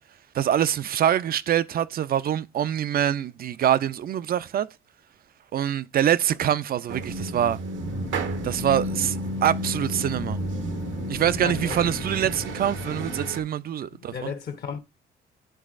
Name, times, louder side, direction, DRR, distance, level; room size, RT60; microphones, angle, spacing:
voice 1, 0.3-4.7 5.5-7.6 8.4-9.2 9.4-10.4 11.1-14.3, right 10 dB, 50° right, 0.4 m, -24 dB
sound 1, 6.9-13.4, right 1 dB, 75° right, 0.9 m, -32 dB
sound 2, 7.8-13.3, left 4 dB, 90° left, 1.3 m, -39 dB
voice 2, 11.4-11.9 13.9-14.8, left 7 dB, 55° left, 0.9 m, -34 dB
11.5 x 3.9 x 2.5 m
cardioid pair, 90°, 20 cm